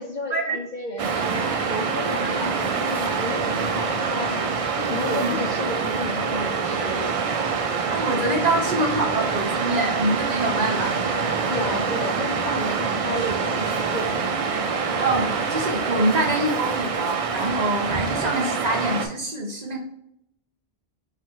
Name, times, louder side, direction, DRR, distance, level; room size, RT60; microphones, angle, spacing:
voice 1, 0.0-7.2 11.5-14.5, left 2 dB, 55° left, 2 dB, 0.6 m, -32 dB
Waves surf, 1.0-19.1, right 5 dB, 65° right, 0.3 m, -25 dB
voice 2, 7.9-11.3 15.0-19.8, right 1 dB, 40° right, -1 dB, 0.8 m, -25 dB
4.4 x 2.4 x 4.4 m, 0.76 s
omnidirectional pair, 1.1 m